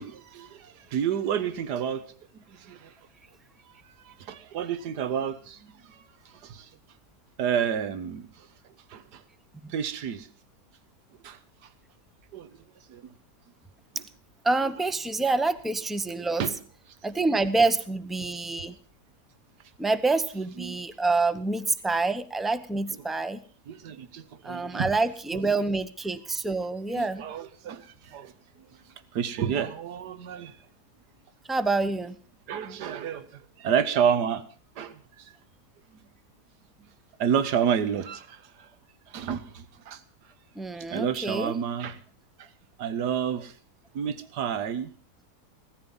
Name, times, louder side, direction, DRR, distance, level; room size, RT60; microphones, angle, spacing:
voice 1, 0.0-2.0 2.3-2.9 4.0-6.7 7.4-8.5 8.9-9.2 9.7-10.3 11.2-11.4 12.3-12.5 12.9-13.1 16.4-16.5 20.6-20.7 23.7-24.9 25.3-25.4 26.9-28.3 29.1-30.6 32.5-34.4 34.8-35.3 36.8-36.9 37.2-38.7 39.1-40.0 40.8-42.0 42.4-42.5 42.8-43.5 43.9-44.9, right 8 dB, 80° right, 13 dB, 1.7 m, -30 dB
voice 2, 14.4-16.4 17.0-18.7 19.8-23.4 24.4-27.2 31.5-32.2 40.5-41.6, right 3 dB, ahead, 12 dB, 0.4 m, -27 dB
16.5 x 14.0 x 5.5 m, 0.42 s
omnidirectional pair, 1.7 m